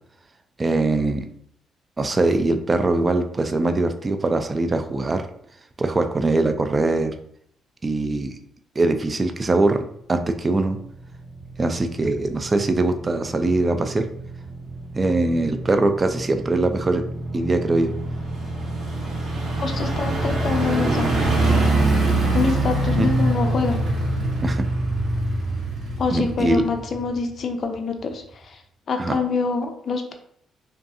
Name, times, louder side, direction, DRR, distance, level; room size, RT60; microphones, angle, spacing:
voice 1, 0.6-1.3 2.0-5.2 5.8-7.1 7.8-8.4 8.8-10.8 11.6-14.0 14.9-17.0 17.3-17.9 22.9-23.1 24.4-24.6 26.1-26.6 29.0-29.2, right 2 dB, 30° right, 7 dB, 0.3 m, -22 dB
sound 1, 10.8-27.4 27.7-27.8, right 2 dB, 75° right, 1.0 m, -25 dB
voice 2, 19.6-21.4 22.3-23.8 26.0-28.6 28.9-30.1, left 5 dB, 50° left, 4 dB, 0.4 m, -26 dB
2.5 x 2.3 x 2.6 m, 0.67 s
cardioid pair, 90°, 0 cm